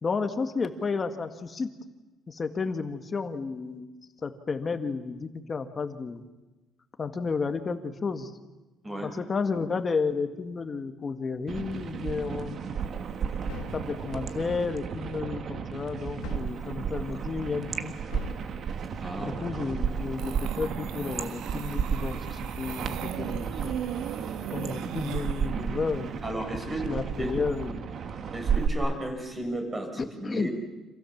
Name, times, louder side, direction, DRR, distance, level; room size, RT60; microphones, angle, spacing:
voice 1, 0.0-1.7 2.3-3.9 4.2-6.2 7.0-8.3 9.0-12.6 13.7-17.9 19.2-23.7 24.5-26.1 26.9-27.9 30.2-30.5, left 4 dB, 25° left, 7 dB, 1.9 m, -32 dB
sound 1, 11.5-28.7, right 7 dB, 40° right, 1.6 m, -33 dB
sound 2, 13.5-14.0 16.2-16.7 18.1-18.5, left 11 dB, 90° left, 1.9 m, -42 dB
voice 2, 19.0-19.7 26.2-26.9 27.2-27.3 28.3-30.5, right 1 dB, 20° right, 3 dB, 5.8 m, -34 dB
sound 3, 20.2-25.5, right 10 dB, 90° right, 1.5 m, -38 dB
30.0 x 27.0 x 7.3 m, 1.1 s
cardioid pair, 160°, 0 cm